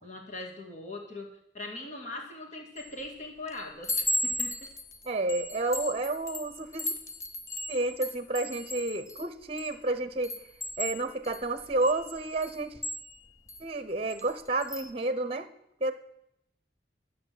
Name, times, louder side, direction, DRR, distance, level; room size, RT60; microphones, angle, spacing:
voice 1, 0.0-1.3 1.5-4.7, left 2 dB, 40° left, 0 dB, 2.2 m, -41 dB
Chime, 2.8-3.1 3.5-9.8 10.2-13.6 14.1-14.3 14.6-14.9, left 1 dB, 15° left, 0.8 m, -36 dB
voice 2, 5.0-6.9 7.7-10.3 10.8-12.8 13.6-15.5 15.8-15.9, right 2 dB, 35° right, 12 dB, 0.9 m, -30 dB
12.0 x 7.9 x 7.7 m, 0.78 s
head